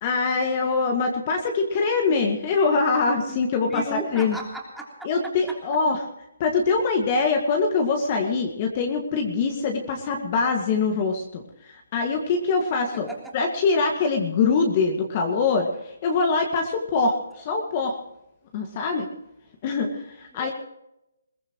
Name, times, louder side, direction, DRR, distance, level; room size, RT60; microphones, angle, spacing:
voice 1, 0.0-4.4 5.0-6.0 6.4-13.1 13.3-18.0 18.5-19.1 19.6-20.5, left 4 dB, 30° left, 2 dB, 2.0 m, -23 dB
voice 2, 3.7-5.1 5.5-5.6 13.1-13.3 20.3-20.5, right 2 dB, ahead, -2 dB, 3.4 m, -35 dB
22.0 x 17.5 x 3.1 m, 0.87 s
hypercardioid pair, 160°, 0 cm